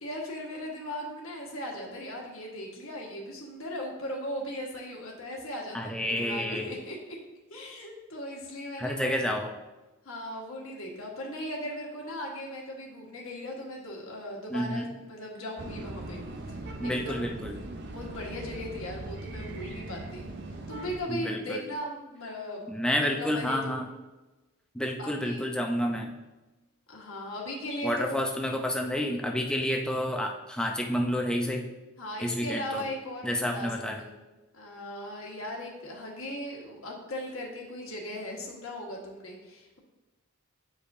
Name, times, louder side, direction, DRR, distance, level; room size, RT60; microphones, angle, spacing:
voice 1, 0.0-7.0 7.5-9.2 10.0-16.2 16.5-17.2 17.9-20.3 20.7-23.8 25.0-25.5 26.9-28.2 32.0-34.2 34.5-39.8, left 1 dB, 70° left, -1 dB, 1.4 m, -38 dB
voice 2, 5.7-6.7 8.8-9.5 14.5-14.9 16.8-17.6 21.1-21.7 22.7-23.9 24.7-26.1 27.8-31.7 32.2-32.8 33.2-34.0, equal, 5° left, 1 dB, 0.5 m, -29 dB
sound 1, 15.6-21.0, right 2 dB, 50° right, 0.5 m, -40 dB
8.5 x 5.0 x 2.6 m, 1.1 s
head